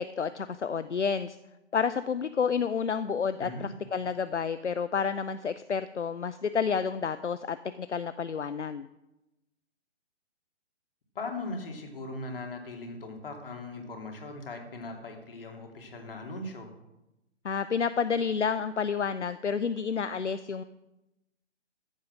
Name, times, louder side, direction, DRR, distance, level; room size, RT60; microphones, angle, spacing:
voice 1, 0.0-1.4 1.7-8.9 17.4-20.6, left 6 dB, 75° left, 13 dB, 0.7 m, -30 dB
voice 2, 3.4-3.7 11.1-16.7, left 2 dB, 50° left, 3 dB, 2.9 m, -39 dB
14.5 x 8.6 x 6.1 m, 0.95 s
figure-of-eight pair, 135°, 36 cm